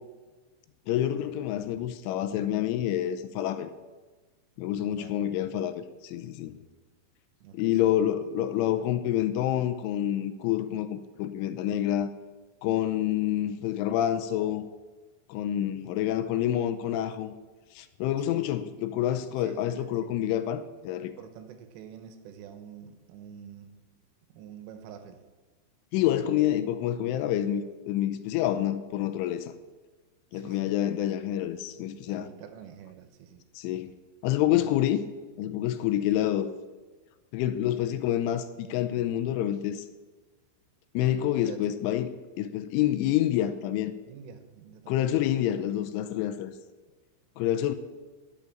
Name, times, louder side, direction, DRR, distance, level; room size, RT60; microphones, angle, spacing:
voice 1, 0.9-3.7 4.6-6.6 7.5-12.1 12.6-14.7 15.3-17.3 17.8-21.1 25.9-29.5 30.3-32.3 33.6-33.9 34.2-35.0 35.4-36.5 37.3-39.9 40.9-42.1 42.4-43.9 44.9-46.5 47.4-47.7, left 12 dB, 85° left, 10 dB, 3.1 m, -28 dB
voice 2, 4.8-5.2 7.4-8.2 18.3-18.5 19.3-20.2 21.0-23.8 24.3-25.3 26.2-26.5 30.3-30.7 31.9-33.4 34.5-34.9 41.4-41.8 44.1-45.0, right 8 dB, 80° right, 8 dB, 3.6 m, -47 dB
12.0 x 7.0 x 9.0 m, 1.3 s
omnidirectional pair, 5.8 m